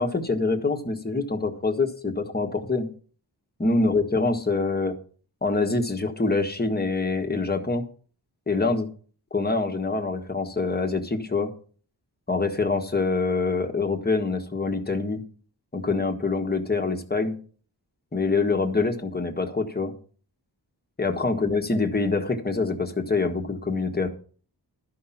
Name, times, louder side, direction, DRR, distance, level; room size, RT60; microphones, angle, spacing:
voice 1, 0.0-2.9 3.6-4.9 5.4-7.9 8.5-8.9 9.3-11.5 12.3-15.2 15.7-17.4 18.1-19.9 21.0-24.1, left 3 dB, 25° left, 5 dB, 1.4 m, -25 dB
12.5 x 5.6 x 7.2 m, 0.43 s
wide cardioid pair, 135°, 41 cm